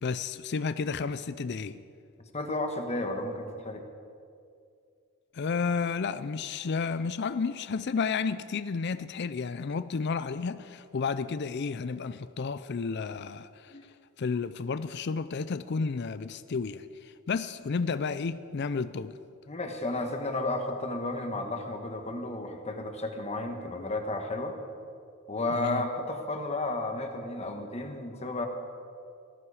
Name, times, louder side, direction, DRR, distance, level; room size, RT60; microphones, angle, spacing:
voice 1, 0.0-1.8 5.3-13.8 14.2-19.2 25.5-25.9, left 5 dB, 50° left, 0.4 m, -32 dB
voice 2, 2.3-3.8 13.7-13.9 19.5-24.5 25.3-28.5, left 2 dB, 30° left, 1.3 m, -33 dB
19.0 x 14.0 x 4.9 m
head